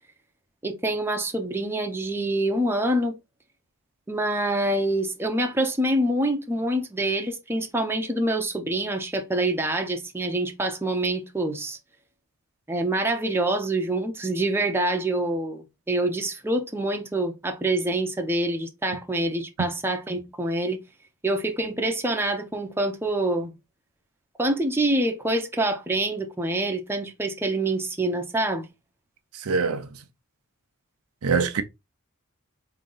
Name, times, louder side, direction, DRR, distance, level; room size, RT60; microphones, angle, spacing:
voice 1, 0.6-3.1 4.1-11.8 12.7-20.8 21.2-23.5 24.4-28.7, right 1 dB, 10° right, 0.7 m, -26 dB
voice 2, 29.3-29.9 31.2-31.6, right 5 dB, 75° right, 0.6 m, -24 dB
3.8 x 2.9 x 3.8 m
head